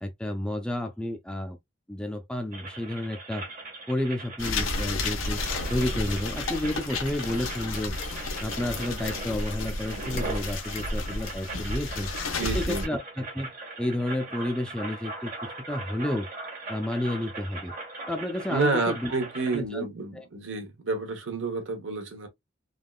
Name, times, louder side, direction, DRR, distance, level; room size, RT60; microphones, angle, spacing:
voice 1, 0.0-1.6 1.9-3.5 3.9-5.4 5.7-7.9 8.4-12.1 12.4-13.5 13.8-15.3 15.7-16.3 16.7-17.7 18.1-19.1 19.5-19.9 20.1-20.3, left 1 dB, 5° left, 0.4 m, -31 dB
sound 1, 2.5-19.6, right 2 dB, 40° right, 1.3 m, -40 dB
sound 2, 4.4-12.9, left 2 dB, 90° left, 0.8 m, -32 dB
voice 2, 12.3-12.9 18.5-22.3, right 3 dB, 70° right, 1.0 m, -29 dB
3.5 x 2.3 x 2.2 m
head